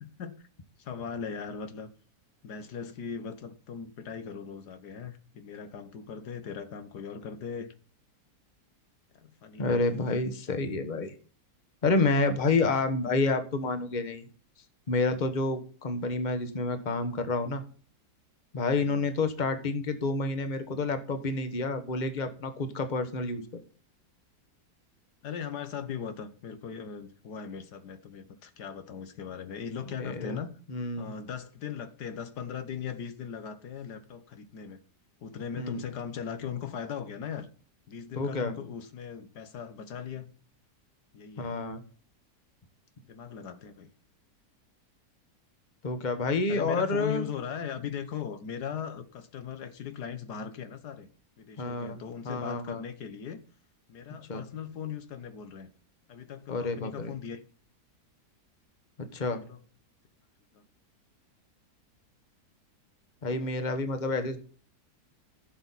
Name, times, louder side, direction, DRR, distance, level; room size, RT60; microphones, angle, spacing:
voice 1, 0.0-0.5 0.8-1.9 2.4-7.7 9.1-9.8 18.8-19.0 25.2-30.5 31.0-34.8 35.2-37.5 37.9-40.3 41.1-41.5 43.1-43.9 46.5-51.1 51.4-53.4 53.9-55.7 56.1-57.4 59.4-59.6 60.5-60.6, left 7 dB, 80° left, 1.7 m, -39 dB
voice 2, 9.6-11.1 11.8-14.2 14.9-17.6 18.5-23.6 29.9-30.4 30.7-31.1 35.6-35.8 38.1-38.5 41.4-41.8 45.8-47.2 51.6-52.0 52.2-52.8 54.3-54.5 56.5-57.1 59.0-59.4 63.2-64.4, left 3 dB, 30° left, 1.3 m, -29 dB
15.0 x 7.0 x 4.1 m
omnidirectional pair, 1.7 m